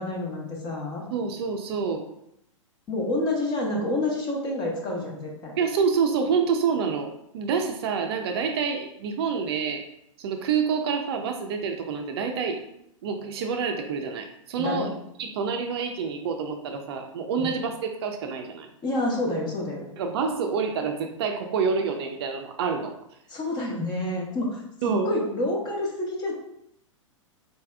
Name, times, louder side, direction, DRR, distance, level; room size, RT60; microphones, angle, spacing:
voice 1, 0.0-1.0 2.9-5.5 14.6-14.9 17.4-17.5 18.8-19.9 23.3-24.6 25.0-26.3, left 1 dB, 25° left, -1 dB, 1.0 m, -28 dB
voice 2, 1.1-2.0 5.6-9.8 10.2-12.6 13.0-14.9 15.2-18.7 20.0-22.9 24.8-25.1, right 5 dB, 50° right, 5 dB, 0.5 m, -27 dB
4.2 x 3.3 x 2.3 m, 0.77 s
figure-of-eight pair, 105°, 17 cm